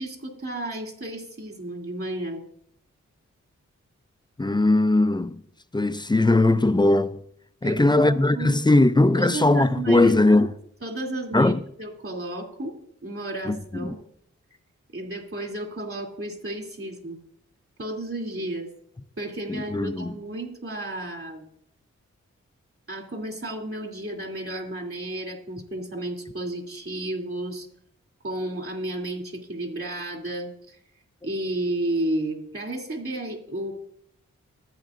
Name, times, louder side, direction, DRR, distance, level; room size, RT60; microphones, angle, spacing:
voice 1, 0.0-2.4 7.6-8.6 9.1-10.5 10.8-12.8 13.0-14.0 14.9-17.2 17.8-18.7 19.2-21.5 22.9-27.7 28.2-30.8 31.2-33.7, right 1 dB, 45° right, 2.9 m, -32 dB
voice 2, 4.4-5.4 5.7-7.2 7.6-10.5 11.3-11.6 13.5-13.9 19.5-20.1, left 2 dB, 15° left, 0.5 m, -20 dB
14.0 x 8.9 x 2.6 m
cardioid pair, 45°, 31 cm